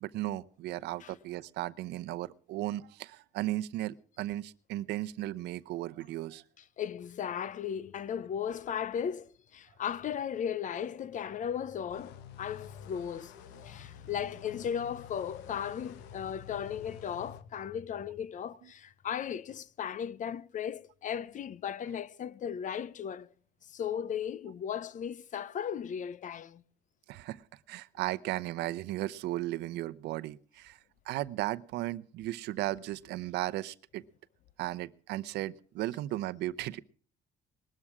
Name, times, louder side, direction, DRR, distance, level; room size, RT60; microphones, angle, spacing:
voice 1, 0.0-6.4 27.1-27.4 27.7-30.8 31.1-34.0 34.6-36.8, right 15 dB, 85° right, 0.8 m, -35 dB
voice 2, 6.8-23.3 23.7-26.6, left 8 dB, 50° left, 0.8 m, -36 dB
sound 1, 11.9-17.4, left 9 dB, 90° left, 1.4 m, -51 dB
20.0 x 13.5 x 4.9 m
cardioid pair, 110°, 17 cm